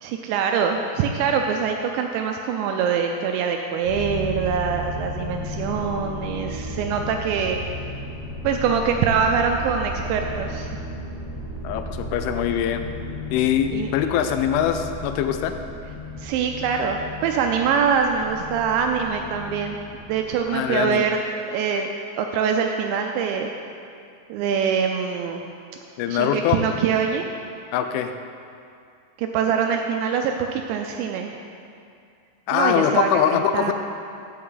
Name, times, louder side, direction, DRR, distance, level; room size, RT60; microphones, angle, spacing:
voice 1, 0.0-7.6 8.4-10.7 13.7-13.9 16.2-19.8 20.0-21.9 22.2-23.5 24.3-25.4 26.1-27.3 29.2-31.4 32.5-33.7, right 6 dB, 85° right, 3 dB, 2.6 m, -24 dB
sound 1, 3.8-20.9, equal, 55° left, 1.2 m, -34 dB
voice 2, 11.6-12.8 13.3-15.6 20.5-21.0 26.0-26.6 27.7-28.1 32.5-33.7, left 9 dB, 85° left, 8 dB, 3.0 m, -22 dB
15.0 x 6.3 x 3.9 m, 2.4 s
omnidirectional pair, 5.5 m